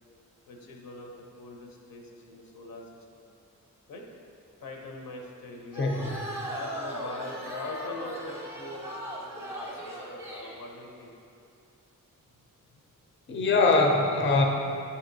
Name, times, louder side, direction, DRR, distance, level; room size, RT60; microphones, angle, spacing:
voice 1, 0.4-2.8 3.1-3.3 3.9-4.0 4.6-5.9 6.5-11.1, left 2 dB, 85° left, 0 dB, 0.6 m, -42 dB
sound 1, 5.7-10.6, equal, 5° right, 0.6 m, -38 dB
voice 2, 5.8-6.1 13.3-14.4, left 3 dB, 35° left, 1 dB, 0.4 m, -22 dB
7.2 x 2.7 x 2.6 m, 2.6 s
wide cardioid pair, 115°, 33 cm